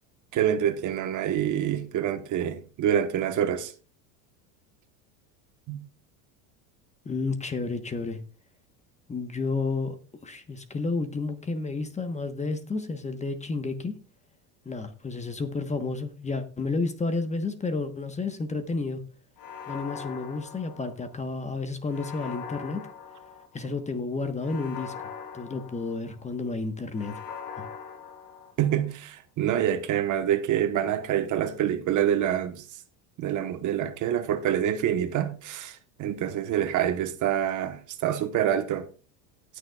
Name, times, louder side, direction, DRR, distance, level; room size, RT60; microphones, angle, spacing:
voice 1, 0.3-3.7 5.7-5.8 28.6-32.6 33.2-38.9, right 10 dB, 45° right, 1.1 m, -26 dB
voice 2, 7.0-8.2 9.1-10.0 10.2-14.0 14.6-19.0 19.7-22.9 23.5-25.1 25.3-27.2 27.6-27.7, left 3 dB, 15° left, 1.1 m, -31 dB
sound 1, 19.4-21.2 21.9-23.7 24.4-26.3 26.9-28.8, left 7 dB, 50° left, 2.9 m, -41 dB
18.5 x 6.7 x 2.3 m
supercardioid pair, 120°, 44 cm